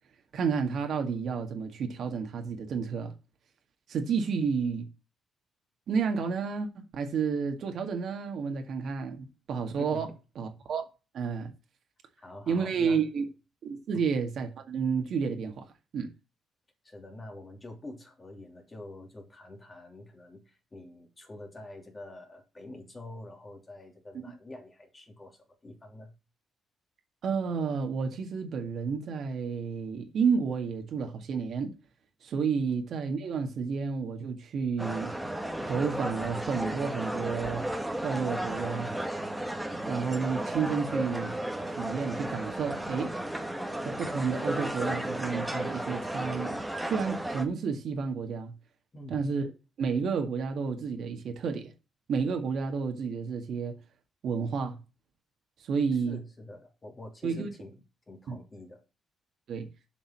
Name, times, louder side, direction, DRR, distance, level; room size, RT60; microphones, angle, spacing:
voice 1, 0.3-3.1 3.9-4.9 5.9-10.1 10.4-10.8 11.1-11.5 12.5-13.2 13.6-15.7 15.9-16.1 27.2-31.7 32.2-35.1 35.7-37.7 38.0-38.9 39.9-41.3 41.8-43.1 43.9-46.6 46.8-48.5 49.1-49.4 49.8-51.7 52.1-53.8 54.2-54.8 55.7-56.2 57.2-57.5 58.3-58.4 59.5-59.7, right 5 dB, 65° right, 1.9 m, -31 dB
voice 2, 9.8-10.2 12.2-13.1 13.9-14.1 16.8-26.2 48.9-49.3 55.9-58.8, left 2 dB, 25° left, 3.0 m, -46 dB
sound 1, 34.8-47.5, right 1 dB, 5° right, 1.5 m, -34 dB
7.5 x 5.5 x 7.4 m
cardioid pair, 90°, 0 cm